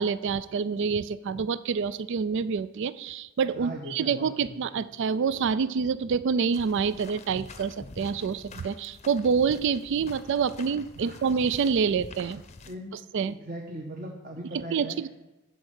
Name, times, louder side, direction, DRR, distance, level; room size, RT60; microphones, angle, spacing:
voice 1, 0.0-12.4 13.1-13.3 14.5-15.1, right 6 dB, 55° right, 16 dB, 0.3 m, -27 dB
voice 2, 3.5-4.8 10.9-11.1 12.7-12.9 13.3-15.0, right 1 dB, 40° right, 1 dB, 1.2 m, -39 dB
sound 1, 6.5-12.7, left 3 dB, 30° left, 0.7 m, -46 dB
13.5 x 4.5 x 8.1 m, 0.99 s
head